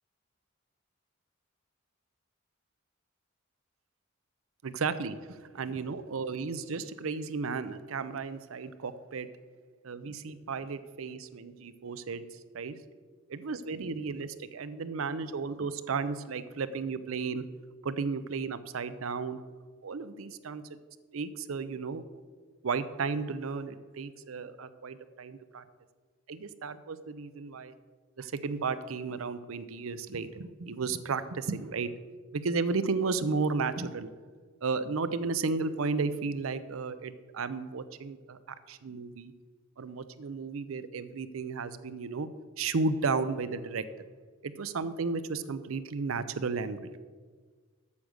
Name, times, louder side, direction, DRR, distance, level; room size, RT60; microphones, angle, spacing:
voice 1, 4.6-9.3 9.8-12.8 13.3-17.4 17.8-19.4 19.8-20.6 21.1-22.0 22.6-25.6 26.3-27.7 28.2-31.9 32.3-34.1 34.6-38.4 38.7-39.3 39.8-42.3 42.6-43.9 44.4-46.9, right 4 dB, 90° right, 13 dB, 0.6 m, -33 dB
8.5 x 6.4 x 6.3 m, 1.5 s
head